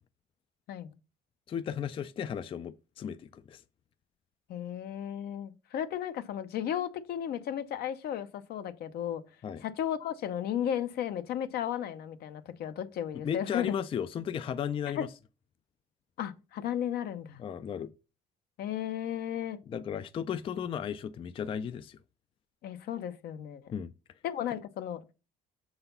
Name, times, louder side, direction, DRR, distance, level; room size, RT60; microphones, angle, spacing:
voice 1, 1.5-3.6 9.4-9.6 13.2-15.1 17.4-17.9 19.7-22.0 23.7-23.9, left 8 dB, 30° left, 0.3 m, -35 dB
voice 2, 4.5-9.2 9.6-13.8 14.9-15.1 16.2-17.4 18.6-19.6 22.6-23.7 24.2-25.0, left 10 dB, 70° left, 0.8 m, -34 dB
6.8 x 4.0 x 5.4 m
cardioid pair, 110°, 17 cm